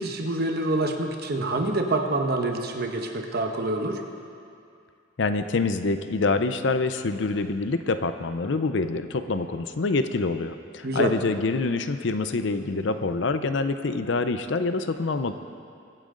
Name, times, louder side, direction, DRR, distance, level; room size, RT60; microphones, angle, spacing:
voice 1, 0.0-4.0 10.8-11.1, right 2 dB, 55° right, 3 dB, 1.1 m, -26 dB
voice 2, 5.2-15.3, left 3 dB, 65° left, 10 dB, 0.6 m, -26 dB
23.0 x 9.0 x 3.8 m, 2.4 s
head